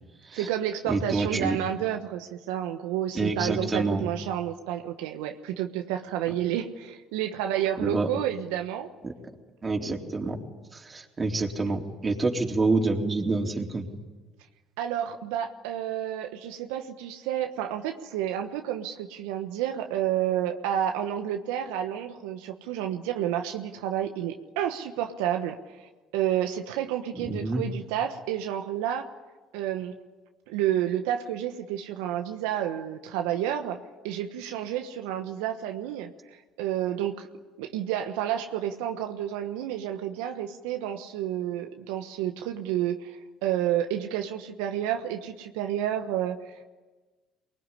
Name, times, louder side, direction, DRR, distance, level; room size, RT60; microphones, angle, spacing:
voice 1, 0.3-8.9 14.8-29.1 29.5-29.9 30.5-37.3 37.6-46.6, right 11 dB, 80° right, 5 dB, 1.2 m, -30 dB
voice 2, 0.9-1.6 3.1-4.0 7.8-8.1 9.0-9.1 9.6-10.4 10.7-13.9 27.3-27.6, right 3 dB, 30° right, 2 dB, 3.8 m, -27 dB
23.5 x 20.0 x 10.0 m, 1.3 s
supercardioid pair, 75°, 0 cm